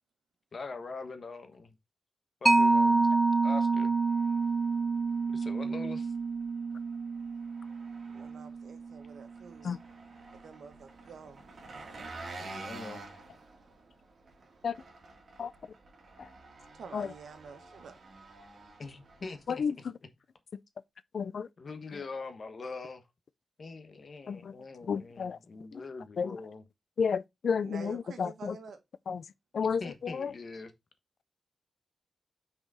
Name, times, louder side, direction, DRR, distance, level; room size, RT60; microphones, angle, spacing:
voice 1, 0.5-1.7 2.4-3.1 3.4-3.9 5.3-6.1 9.6-9.8 12.4-13.0 18.8-19.6 21.6-23.0 23.6-26.6 29.8-30.7, left 4 dB, 45° left, 1.2 m, -43 dB
Mallet percussion, 2.5-9.5, right 3 dB, 20° right, 0.5 m, -28 dB
Engine, 3.8-19.6, right 3 dB, 55° right, 2.3 m, -50 dB
voice 2, 8.1-9.7 10.3-11.5 16.7-18.0 27.6-28.8, right 6 dB, 85° right, 1.5 m, -48 dB
voice 3, 19.5-19.9 21.1-21.5 21.9-22.0 24.3-24.5 24.8-25.4 25.7-25.8 26.2-26.4 27.0-28.6 29.1-29.2 29.5-30.3, left 6 dB, 60° left, 0.4 m, -32 dB
6.2 x 5.0 x 4.1 m
wide cardioid pair, 145°, 0 cm